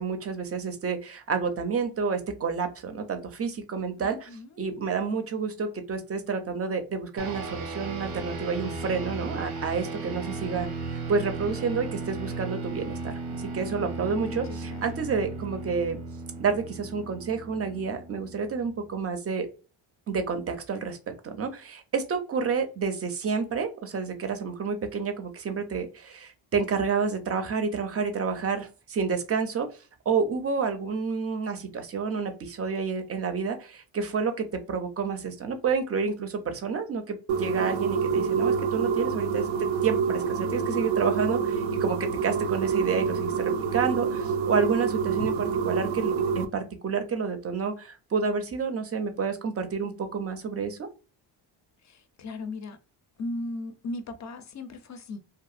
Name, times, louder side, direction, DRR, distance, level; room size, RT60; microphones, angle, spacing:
voice 1, 0.0-4.3 4.6-16.0 16.4-19.5 20.1-29.7 30.1-50.9, right 5 dB, 30° right, 0.5 m, -29 dB
voice 2, 4.0-4.5 14.2-14.8 51.8-52.8 53.2-55.2, left 2 dB, 35° left, 0.4 m, -37 dB
sound 1, 7.2-18.9, right 3 dB, 90° right, 1.0 m, -36 dB
sound 2, 37.3-46.4, right 6 dB, 70° right, 0.6 m, -27 dB
2.8 x 2.4 x 2.4 m
cardioid pair, 110°, 48 cm